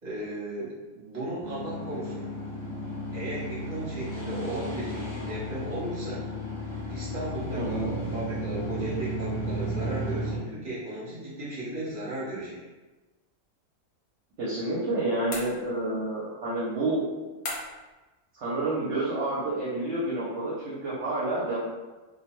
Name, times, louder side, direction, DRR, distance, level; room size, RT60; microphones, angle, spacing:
voice 1, 0.0-2.3 3.1-6.2 6.9-12.6, right 1 dB, 35° right, -8 dB, 1.1 m, -36 dB
sound 1, 1.4-10.4, equal, 40° left, 0.4 m, -33 dB
voice 2, 7.5-8.0 14.4-17.1 18.3-21.6, right 2 dB, 65° right, -8 dB, 0.9 m, -29 dB
sound 2, 15.3-16.0 17.4-17.9, left 2 dB, 60° left, 0.9 m, -37 dB
2.4 x 2.2 x 2.9 m, 1.2 s
omnidirectional pair, 1.4 m